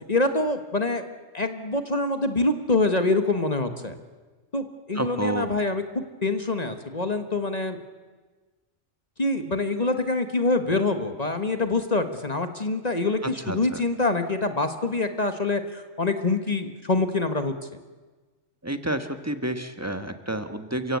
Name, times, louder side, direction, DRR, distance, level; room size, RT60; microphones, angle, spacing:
voice 1, 0.1-1.0 1.3-4.0 4.5-7.8 9.2-17.5, left 2 dB, 35° left, 8 dB, 1.4 m, -25 dB
voice 2, 4.9-5.5 13.5-13.8 18.6-21.0, right 1 dB, 15° right, 9 dB, 1.3 m, -29 dB
30.0 x 16.0 x 8.4 m, 1.3 s
omnidirectional pair, 1.2 m